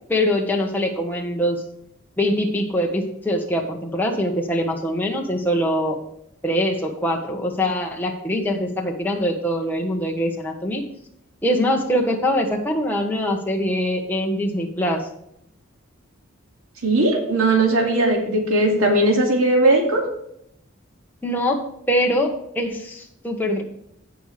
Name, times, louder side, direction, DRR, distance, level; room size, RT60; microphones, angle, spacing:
voice 1, 0.1-1.6 2.2-6.0 6.4-10.8 11.4-15.1 21.2-23.6, equal, 10° left, 0 dB, 1.3 m, -23 dB
voice 2, 16.8-20.0, right 2 dB, 90° right, -1 dB, 2.4 m, -18 dB
16.0 x 5.5 x 3.4 m, 0.75 s
head